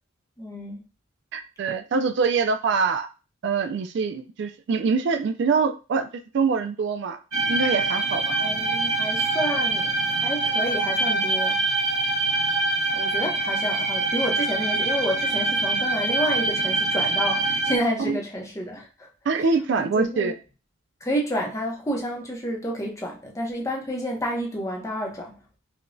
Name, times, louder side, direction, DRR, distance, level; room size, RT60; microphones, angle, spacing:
voice 1, 0.4-0.8 8.4-11.6 12.9-19.1 19.4-19.5 19.8-20.3 21.0-25.3, equal, 15° left, 0.7 m, -30 dB
voice 2, 1.3-3.1 3.4-6.1 6.3-7.2 7.5-8.2 18.1-18.2 19.3-20.3, right 5 dB, 60° right, 0.3 m, -24 dB
sound 1, 7.3-17.8, right 2 dB, 85° right, 0.9 m, -24 dB
4.8 x 2.2 x 2.6 m
head